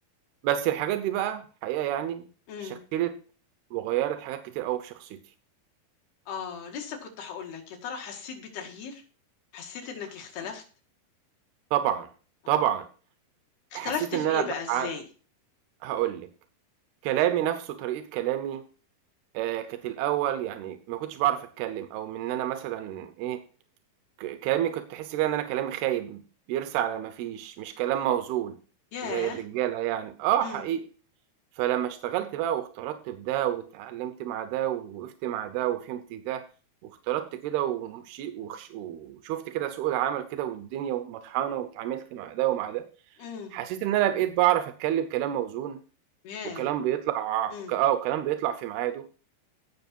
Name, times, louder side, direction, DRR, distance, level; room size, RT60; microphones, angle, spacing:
voice 1, 0.4-2.3 2.6-3.1 3.7-5.2 11.7-12.1 12.5-12.9 13.7-14.9 15.8-16.3 17.0-18.6 19.3-23.4 24.2-26.2 26.5-28.5 29.0-30.8 31.6-36.4 36.8-42.9 43.5-45.8 46.4-49.1, right 12 dB, 85° right, 9 dB, 2.8 m, -29 dB
voice 2, 2.5-2.8 6.3-9.0 9.5-10.6 12.4-12.5 13.7-15.0 28.9-29.4 30.4-30.7 43.2-43.5 46.2-46.7 47.5-47.8, left 6 dB, 85° left, 2 dB, 4.1 m, -36 dB
17.0 x 6.0 x 4.4 m, 0.38 s
omnidirectional pair, 4.4 m